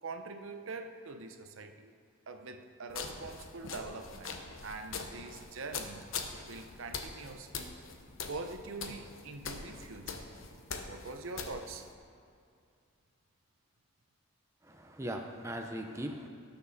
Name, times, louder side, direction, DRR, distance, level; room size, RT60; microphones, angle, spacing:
voice 1, 0.0-1.9 2.3-4.4 4.6-6.0 6.5-7.7 8.3-10.1 10.8-11.9, right 3 dB, 75° right, 7 dB, 0.8 m, -44 dB
sound 1, 2.9-11.9, left 5 dB, 75° left, 1.0 m, -43 dB
voice 2, 14.6-16.3, right 1 dB, 15° right, 3 dB, 0.6 m, -39 dB
18.0 x 7.0 x 4.2 m, 2.4 s
head